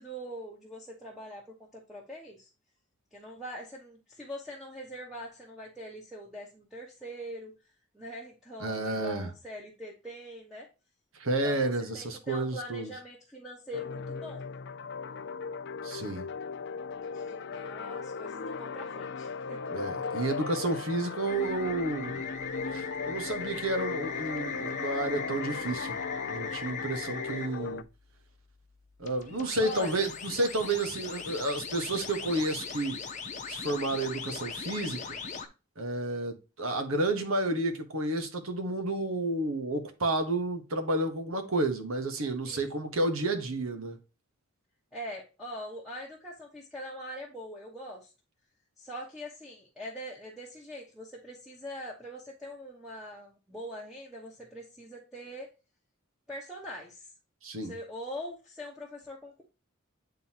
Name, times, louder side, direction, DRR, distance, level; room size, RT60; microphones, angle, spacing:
voice 1, 0.0-2.5 3.1-7.5 7.9-10.7 11.4-14.5 17.1-19.7 29.6-30.0 42.4-42.7 44.9-48.1 48.8-55.5 56.3-57.1 57.5-59.4, equal, ahead, 1.2 m, -43 dB
voice 2, 8.6-9.3 11.1-12.9 15.8-16.3 19.7-22.3 22.7-26.0 26.3-27.8 29.0-33.0 33.5-35.0 35.8-44.0 57.4-57.8, right 2 dB, 70° right, 1.3 m, -31 dB
sound 1, 13.7-27.8, left 5 dB, 50° left, 0.4 m, -38 dB
sound 2, 21.3-27.5 29.0-35.5, left 5 dB, 35° left, 0.9 m, -39 dB
9.3 x 3.9 x 2.9 m
head